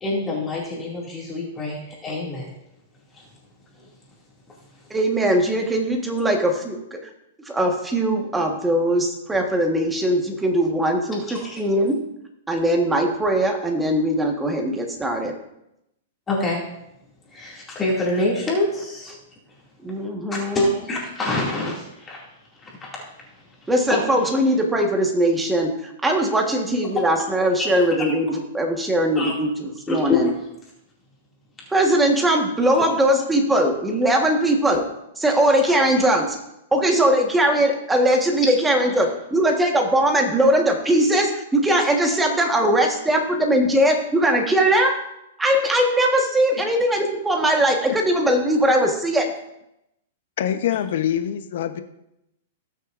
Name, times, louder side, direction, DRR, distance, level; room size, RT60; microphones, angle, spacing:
voice 1, 0.0-2.5 3.1-3.3 3.8-3.9 11.3-11.5 16.3-16.7 17.3-19.1 20.3-22.3 22.6-23.0 23.6-23.7 24.3-24.4 27.6-28.0 29.2-29.3 29.9-30.3 38.8-39.0, left 2 dB, 15° left, -4 dB, 2.4 m, -26 dB
voice 2, 4.9-7.1 7.4-12.0 12.5-15.3 19.8-20.6 23.7-30.3 31.7-34.8 35.2-36.3 36.7-45.0 45.4-49.3, right 1 dB, 5° right, 2 dB, 1.4 m, -20 dB
voice 3, 50.4-51.8, left 10 dB, 65° left, 9 dB, 0.9 m, -24 dB
19.0 x 6.5 x 2.6 m, 0.84 s
hypercardioid pair, 150°, 0 cm